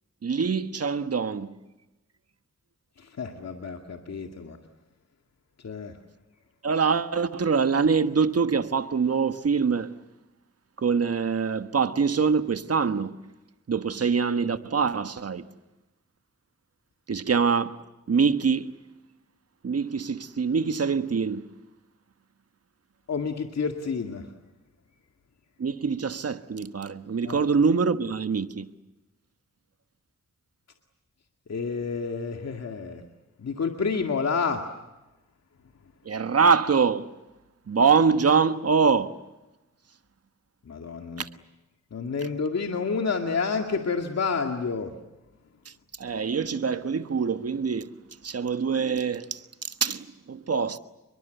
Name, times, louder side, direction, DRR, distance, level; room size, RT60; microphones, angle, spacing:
voice 1, 0.2-1.5 6.6-9.9 10.8-13.2 13.7-15.5 17.1-17.8 18.1-18.8 19.6-21.5 25.6-28.7 36.0-37.1 37.7-39.2 41.2-41.3 45.6-47.9 48.2-50.8, right 5 dB, 55° right, 1.3 m, -24 dB
voice 2, 3.0-4.6 5.6-6.0 23.1-24.3 27.3-27.4 31.5-33.0 33.4-34.6 40.7-41.2 41.9-44.9, left 5 dB, 60° left, 2.1 m, -29 dB
28.5 x 23.0 x 8.1 m
wide cardioid pair, 90°, 30 cm